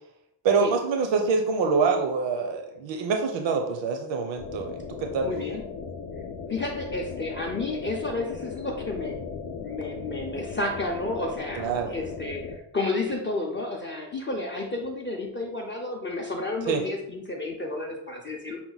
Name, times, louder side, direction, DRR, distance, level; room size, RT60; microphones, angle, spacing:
voice 1, 0.4-5.3 11.6-11.9 16.7-16.8, right 5 dB, 75° right, 4 dB, 0.6 m, -25 dB
sound 1, 4.4-12.6, left 5 dB, 70° left, 0.6 m, -37 dB
voice 2, 5.2-5.6 6.5-9.1 9.6-18.6, left 2 dB, 25° left, -1 dB, 0.4 m, -31 dB
5.8 x 2.1 x 3.9 m, 0.80 s
wide cardioid pair, 140°, 46 cm